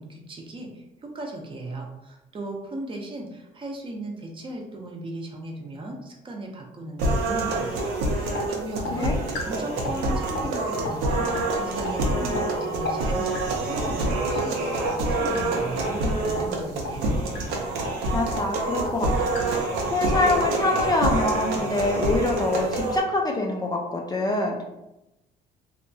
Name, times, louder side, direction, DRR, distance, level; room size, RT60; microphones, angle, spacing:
voice 1, 0.0-17.3, right 1 dB, 30° right, 1 dB, 0.6 m, -37 dB
sound 1, 7.0-23.0, right 2 dB, 90° right, 0.6 m, -26 dB
sound 2, 8.3-8.4 8.8-8.9 9.3-9.4 9.8-10.0 10.3-10.5 10.8-10.9 11.3-11.4 11.8-11.9 12.3-12.4 12.8-12.9 13.3-13.5 13.8-14.0 14.3-14.4 14.8-14.9 15.3-15.4 15.8-15.9 16.3-16.4 16.8-17.0 17.3-17.4 17.8-17.9 18.3-18.4 18.8-18.9 19.3-19.4 19.8-20.0 20.3-20.5 20.8-20.9 21.3-21.4 21.8-21.9, left 3 dB, 75° left, 0.6 m, -33 dB
voice 2, 18.1-24.6, left 2 dB, 25° left, 0 dB, 0.3 m, -25 dB
2.8 x 2.2 x 2.6 m, 0.93 s
cardioid pair, 110°, 17 cm